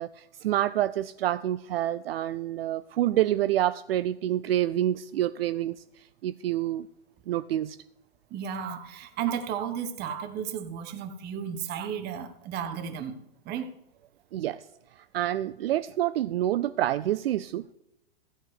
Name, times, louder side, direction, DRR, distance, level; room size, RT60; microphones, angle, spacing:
voice 1, 0.0-6.9 7.3-7.8 14.3-14.6 15.1-17.7, right 13 dB, 65° right, 0.5 m, -27 dB
voice 2, 8.3-13.2 13.4-13.7, right 8 dB, 30° right, 1.3 m, -33 dB
13.5 x 4.5 x 8.0 m
hypercardioid pair, 110°, 32 cm